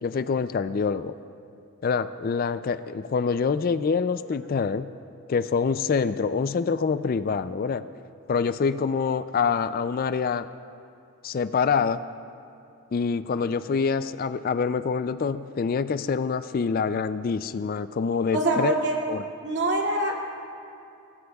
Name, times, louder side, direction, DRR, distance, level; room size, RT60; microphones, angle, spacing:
voice 1, 0.0-1.1 1.8-4.9 5.3-7.8 8.3-10.5 11.2-12.0 12.9-18.7 19.1-19.2, left 5 dB, 40° left, 13 dB, 0.3 m, -26 dB
voice 2, 18.3-19.0 19.4-20.3, right 1 dB, 50° right, -2 dB, 2.5 m, -25 dB
28.5 x 18.5 x 2.4 m, 2.6 s
head